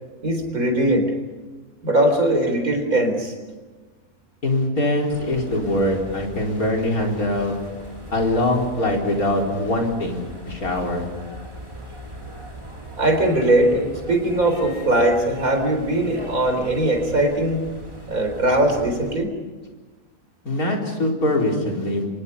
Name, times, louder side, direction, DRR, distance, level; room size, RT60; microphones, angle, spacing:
voice 1, 0.2-1.1 1.8-3.3 13.0-17.6 18.1-19.3, right 1 dB, 70° right, 5 dB, 4.5 m, -20 dB
voice 2, 4.4-7.6 8.1-11.1 20.4-22.1, left 1 dB, 70° left, 0 dB, 4.8 m, -23 dB
sound 1, 5.1-19.2, right 1 dB, 20° right, 3.9 m, -39 dB
28.5 x 25.5 x 5.5 m, 1.3 s
omnidirectional pair, 1.6 m